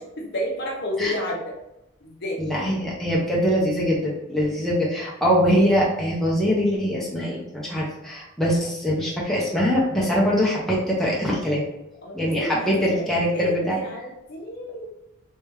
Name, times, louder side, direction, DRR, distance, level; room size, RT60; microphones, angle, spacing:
voice 1, 0.2-1.4 2.0-2.4 10.0-10.2 12.0-12.3 12.6-14.9, left 1 dB, 50° left, -1 dB, 0.9 m, -31 dB
voice 2, 2.4-11.6 12.1-13.8, equal, ahead, -6 dB, 0.7 m, -23 dB
3.4 x 3.3 x 3.1 m, 0.90 s
head